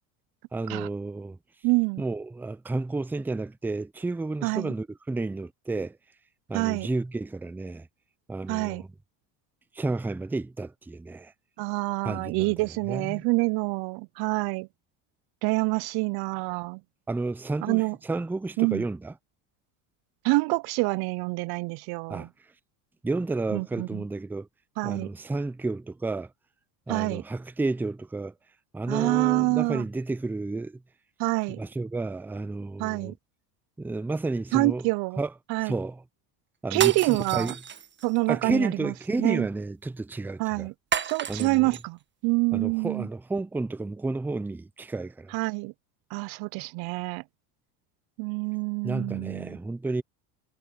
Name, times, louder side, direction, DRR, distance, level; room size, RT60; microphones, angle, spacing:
voice 1, 0.5-1.4 2.0-6.0 6.5-7.9 8.3-8.9 9.7-11.3 12.0-13.2 17.1-19.1 22.1-22.3 23.0-24.5 24.8-26.3 26.9-28.3 28.7-30.8 31.6-33.1 33.8-34.9 35.2-35.3 35.6-36.0 36.6-37.5 38.3-40.7 41.3-41.7 42.5-45.3 48.8-50.0, right 3 dB, 5° right, 0.5 m, -31 dB
voice 2, 1.6-2.0 4.4-4.7 6.5-6.9 8.5-8.8 11.6-14.7 15.4-16.8 17.6-18.0 18.6-18.8 20.2-22.3 23.5-24.0 24.8-25.1 26.9-27.2 28.9-29.9 31.2-31.6 32.8-33.1 34.5-35.2 35.5-35.7 36.7-37.5 38.0-39.5 40.4-40.7 41.1-42.0 42.2-43.1 45.3-45.7 46.1-47.2 48.2-49.6, right 27 dB, 60° right, 0.5 m, -26 dB
sound 1, 36.7-38.2 40.9-41.8, right 7 dB, 25° right, 1.3 m, -32 dB
supercardioid pair, 120°, 44 cm